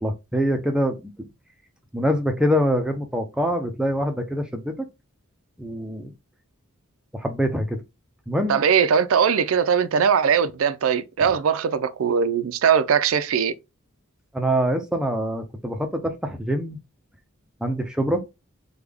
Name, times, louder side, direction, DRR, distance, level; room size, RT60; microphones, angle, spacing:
voice 1, 0.0-1.1 1.9-4.9 5.6-6.1 7.1-7.8 8.3-8.6 11.2-11.3 14.3-16.8 17.6-18.2, equal, 5° right, 0.4 m, -24 dB
voice 2, 8.5-13.5, right 7 dB, 80° right, 0.4 m, -20 dB
3.4 x 2.2 x 3.4 m
head